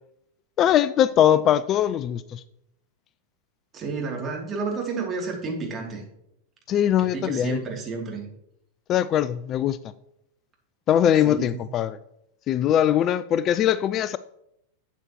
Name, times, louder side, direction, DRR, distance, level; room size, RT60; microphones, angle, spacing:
voice 1, 0.6-2.4 6.7-7.6 8.9-9.8 10.9-12.0 12.5-14.2, left 10 dB, 35° left, 15 dB, 0.3 m, -21 dB
voice 2, 3.7-6.0 7.0-8.3 11.2-11.6, right 4 dB, 25° right, 0 dB, 2.9 m, -31 dB
12.0 x 8.1 x 3.1 m, 0.79 s
figure-of-eight pair, 90°, 0 cm